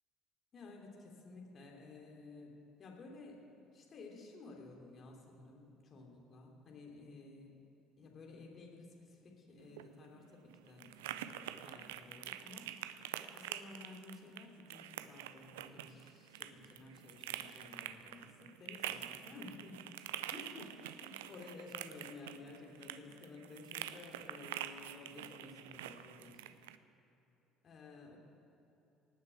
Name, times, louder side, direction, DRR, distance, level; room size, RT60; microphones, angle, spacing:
voice 1, 0.5-3.4 3.7-7.6 8.0-12.7 13.3-19.8 20.3-26.4 27.6-28.2, left 3 dB, 45° left, 0 dB, 3.0 m, -53 dB
sound 1, 9.6-26.8, right 12 dB, 75° right, 0.4 m, -46 dB
18.0 x 6.6 x 8.4 m, 2.9 s
figure-of-eight pair, 55°, 0 cm